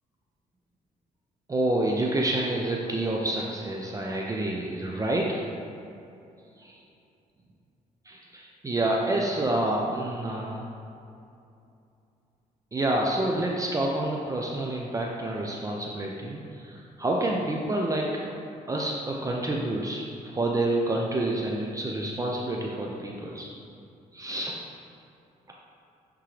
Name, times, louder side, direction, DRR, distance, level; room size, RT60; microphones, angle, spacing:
voice 1, 1.5-5.4 6.6-6.7 8.1-10.6 12.7-18.4 18.7-23.5 24.1-24.5, right 1 dB, 25° right, -1 dB, 0.6 m, -28 dB
8.7 x 3.7 x 3.3 m, 2.6 s
cardioid pair, 95°, 15 cm